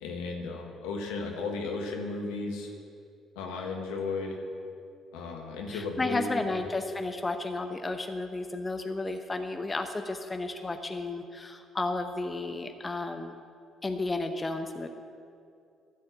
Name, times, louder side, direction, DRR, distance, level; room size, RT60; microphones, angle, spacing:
voice 1, 0.0-2.7 3.3-4.4 5.1-6.4, left 3 dB, 75° left, 1 dB, 1.3 m, -34 dB
voice 2, 5.7-13.4 13.8-14.9, left 2 dB, 25° left, 6 dB, 0.7 m, -33 dB
13.0 x 4.5 x 8.3 m, 2.5 s
hypercardioid pair, 50°, 0 cm